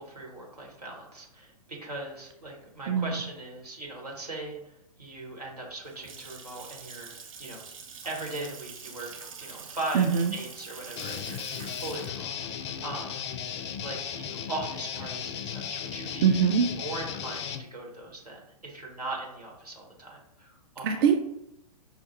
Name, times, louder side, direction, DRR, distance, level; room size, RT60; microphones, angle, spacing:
voice 1, 0.0-7.6 8.0-13.2 13.8-16.4 16.7-21.0, right 2 dB, 85° right, -1 dB, 1.5 m, -39 dB
Water tap faucet / Sink (filling or washing) / Splash splatter, 5.8-14.5, right 6 dB, 60° right, 0.9 m, -45 dB
voice 2, 9.9-10.3 16.2-16.7 20.8-21.2, right 7 dB, 40° right, 6 dB, 0.4 m, -22 dB
Guitar, 10.9-17.7, left 8 dB, 45° left, 0.4 m, -36 dB
5.7 x 2.2 x 2.9 m, 0.82 s
figure-of-eight pair, 110°, 20 cm